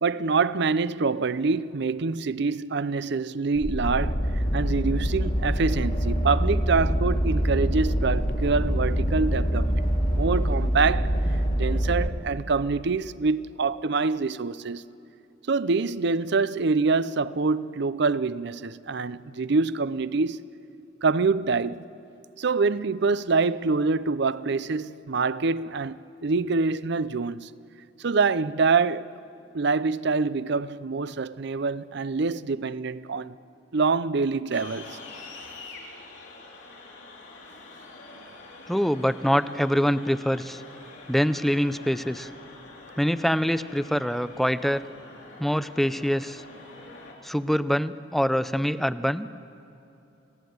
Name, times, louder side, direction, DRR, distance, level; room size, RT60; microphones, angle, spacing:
voice 1, 0.0-4.2 4.5-9.8 10.1-11.1 11.6-14.8 15.5-20.4 21.0-21.8 22.4-27.5 28.0-29.1 29.5-33.3 33.7-35.0, right 4 dB, 65° right, 0.6 m, -25 dB
sound 1, 3.6-12.1, equal, 45° left, 2.3 m, -25 dB
sound 2, 34.5-47.1, left 3 dB, 75° left, 4.7 m, -46 dB
voice 2, 38.7-40.6 41.1-42.3 43.0-44.8 45.4-46.4 47.2-49.3, equal, ahead, 0.6 m, -24 dB
29.5 x 17.0 x 9.5 m
head